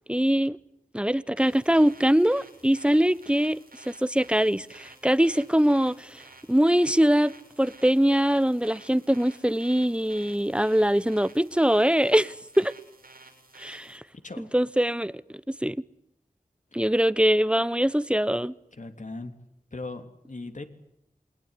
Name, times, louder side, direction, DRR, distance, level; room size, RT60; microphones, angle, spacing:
voice 1, 0.1-0.6 0.9-6.2 6.5-12.7 13.6-14.0 14.4-15.2 15.6-15.8 16.7-18.5, equal, 5° right, 1.0 m, -23 dB
sound 1, 1.4-14.0, right 3 dB, 90° right, 6.9 m, -52 dB
voice 2, 18.7-19.3 19.7-20.7, left 3 dB, 60° left, 3.0 m, -38 dB
28.5 x 21.5 x 9.8 m
wide cardioid pair, 45°, 15 cm